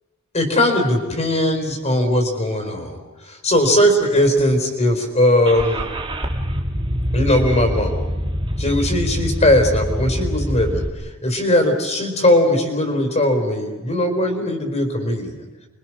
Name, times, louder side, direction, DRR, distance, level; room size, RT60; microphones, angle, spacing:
voice 1, 0.3-6.0 7.1-8.0 8.6-10.8 11.2-15.4, left 1 dB, 30° left, 5 dB, 4.4 m, -19 dB
Car / Engine starting, 5.4-10.9, equal, 20° right, 2.1 m, -24 dB
30.0 x 24.5 x 6.2 m, 1.2 s
head